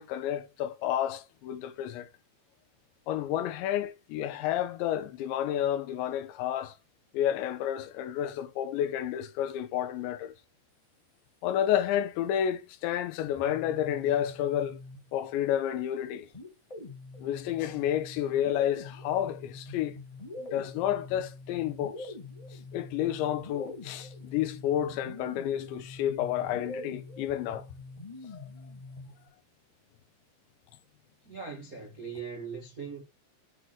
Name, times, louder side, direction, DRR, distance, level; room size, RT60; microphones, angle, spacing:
voice 1, 0.0-2.1 3.1-6.7 7.1-10.3 11.4-14.8 15.1-16.3 17.2-20.0 20.4-22.1 22.7-27.7 28.3-28.5, left 11 dB, 90° left, 3.3 m, -30 dB
sound 1, 13.2-15.4 16.3-29.3, left 2 dB, 40° left, 0.5 m, -45 dB
voice 2, 31.2-33.0, right 5 dB, 55° right, 0.9 m, -40 dB
8.3 x 4.7 x 6.3 m
omnidirectional pair, 5.1 m